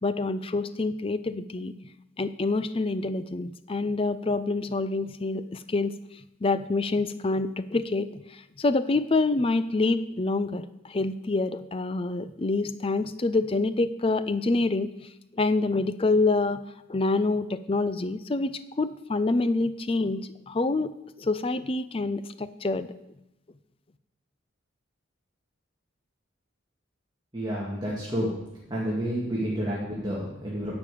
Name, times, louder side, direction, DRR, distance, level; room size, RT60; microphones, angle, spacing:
voice 1, 0.0-1.7 2.2-5.9 6.4-8.2 8.6-14.9 15.4-16.6 16.9-18.5 18.8-20.9 21.2-22.9, left 3 dB, 25° left, 13 dB, 0.4 m, -26 dB
voice 2, 27.3-28.4 28.7-30.7, equal, 20° right, -5 dB, 2.1 m, -30 dB
11.0 x 5.2 x 8.4 m, 0.88 s
head